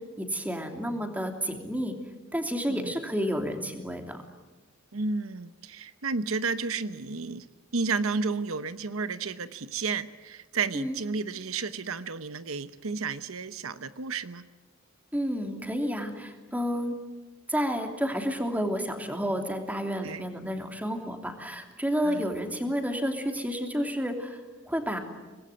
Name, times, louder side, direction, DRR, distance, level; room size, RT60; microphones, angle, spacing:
voice 1, 0.2-1.9 2.3-4.2 10.7-11.0 15.1-16.9 17.5-24.4 24.7-25.0, equal, 10° right, 4 dB, 3.0 m, -30 dB
voice 2, 4.9-7.5 7.7-14.5 20.0-20.2 22.0-22.3, right 4 dB, 75° right, 13 dB, 0.9 m, -32 dB
25.5 x 20.0 x 9.7 m, 1.2 s
head